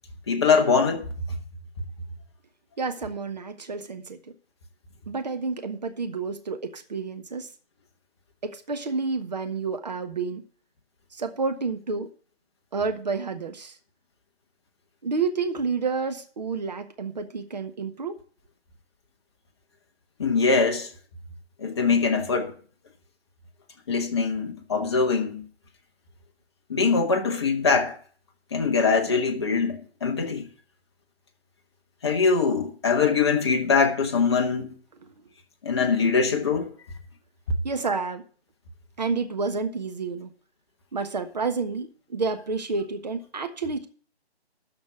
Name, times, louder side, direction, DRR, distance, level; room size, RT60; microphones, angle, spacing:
voice 1, 0.3-1.1 20.2-20.9 21.6-22.5 23.9-25.4 26.7-28.0 28.5-30.5 32.0-34.8 35.6-36.7, left 5 dB, 25° left, 1.2 m, -22 dB
voice 2, 2.8-4.2 5.1-7.5 8.4-10.4 11.1-12.1 12.7-13.8 15.0-18.1 35.0-35.1 37.6-38.2 39.0-40.3 40.9-43.9, right 4 dB, 40° right, 1.3 m, -29 dB
13.0 x 4.4 x 8.1 m
figure-of-eight pair, 165°, 33 cm